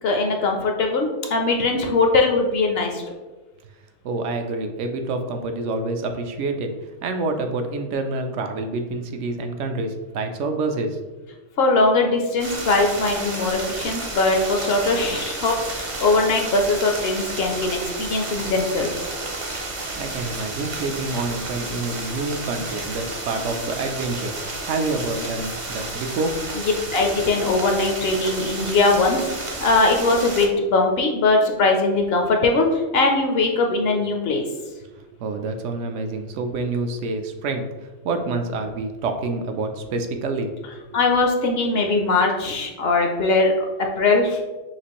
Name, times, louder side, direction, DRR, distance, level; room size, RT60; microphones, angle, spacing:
voice 1, 0.0-3.0 11.6-18.9 26.9-34.5 40.9-43.7 44.0-44.4, left 3 dB, 65° left, 3 dB, 0.7 m, -20 dB
voice 2, 4.0-11.0 20.0-24.3 24.6-26.4 34.9-40.5, right 3 dB, 75° right, 6 dB, 0.9 m, -27 dB
sound 1, 12.4-30.5, right 2 dB, 40° right, 0.5 m, -31 dB
5.9 x 2.5 x 2.9 m, 1.2 s
omnidirectional pair, 1.3 m